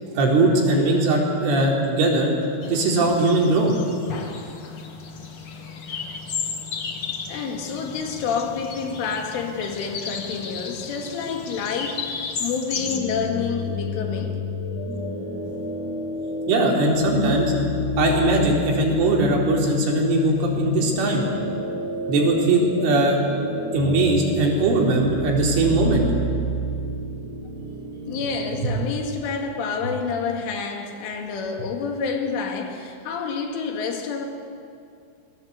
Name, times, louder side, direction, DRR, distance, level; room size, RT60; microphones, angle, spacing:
voice 1, 0.1-2.3 2.7-3.8 16.5-17.5 18.0-21.2 22.1-23.2 23.7-26.1, right 2 dB, 85° right, 6.4 m, -20 dB
sound 1, 2.6-13.0, left 5 dB, 55° left, 1.5 m, -34 dB
voice 2, 7.3-14.4 28.1-34.3, left 5 dB, 90° left, 4.8 m, -28 dB
sound 2, 12.7-28.8, left 2 dB, 15° left, 8.0 m, -29 dB
26.5 x 21.5 x 8.3 m
omnidirectional pair, 5.4 m